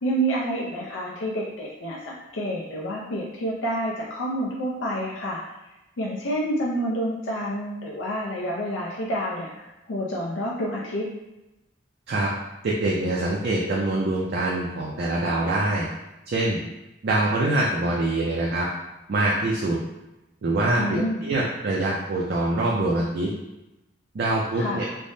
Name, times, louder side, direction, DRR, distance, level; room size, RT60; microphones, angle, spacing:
voice 1, 0.0-5.4 6.0-11.0 20.8-21.3 24.6-24.9, right 1 dB, 80° left, -4 dB, 0.5 m, -28 dB
voice 2, 12.6-15.9 16.3-16.6 17.0-18.7 19.1-19.8 20.4-23.3 24.1-24.9, right 2 dB, 55° right, -4 dB, 0.4 m, -24 dB
3.2 x 2.1 x 2.6 m, 0.97 s
head